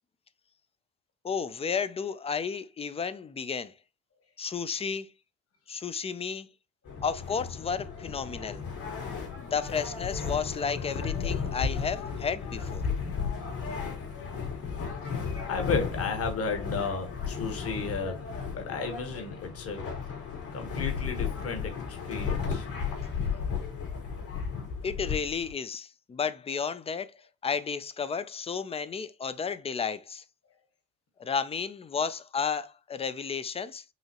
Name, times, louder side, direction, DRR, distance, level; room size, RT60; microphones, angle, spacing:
voice 1, 1.2-3.7 4.4-5.1 5.7-6.5 7.0-8.6 9.4-12.8 24.8-27.1 27.4-30.2 31.2-33.8, left 6 dB, 15° left, 0.3 m, -32 dB
sound 1, 6.9-25.5, left 6 dB, 65° left, 2.8 m, -34 dB
voice 2, 15.5-18.2 18.5-19.8 20.5-22.7, left 4 dB, 40° left, 1.3 m, -33 dB
5.5 x 2.8 x 2.9 m
supercardioid pair, 90°, 38 cm